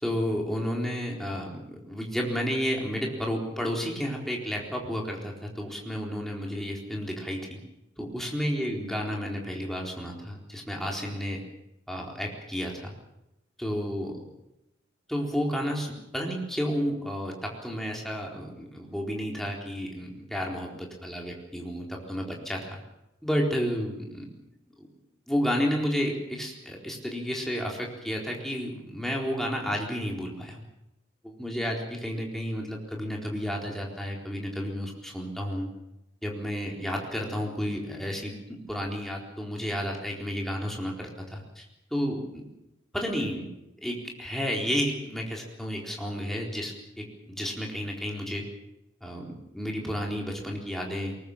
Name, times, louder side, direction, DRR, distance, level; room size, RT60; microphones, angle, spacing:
voice 1, 0.0-7.6 8.0-11.4 11.9-12.9 13.6-14.2 15.1-22.8 23.2-24.3 24.8-24.9 25.3-30.6 31.2-35.7 36.2-41.6 41.9-42.4 42.9-43.5 43.8-48.5 49.0-51.2, equal, ahead, -1 dB, 4.2 m, -31 dB
23.0 x 20.0 x 7.4 m, 0.89 s
head